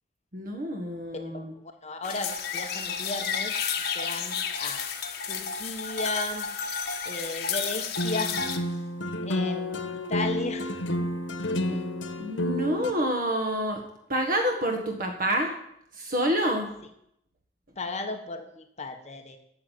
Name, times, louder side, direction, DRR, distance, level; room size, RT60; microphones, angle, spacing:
voice 1, 0.3-1.5 12.2-13.8 14.1-15.5 15.9-16.7, right 1 dB, 50° right, 3 dB, 1.6 m, -27 dB
voice 2, 1.8-3.5 3.9-4.8 5.3-6.5 7.0-8.4 9.2-10.7 11.0-11.1 11.7-11.8 17.8-19.4, left 2 dB, 40° left, 5 dB, 1.2 m, -35 dB
sound 1, 2.0-8.6, left 6 dB, 60° left, 1.4 m, -31 dB
sound 2, 8.0-12.9, left 1 dB, 80° left, 1.3 m, -30 dB
14.5 x 6.5 x 9.3 m, 0.75 s
head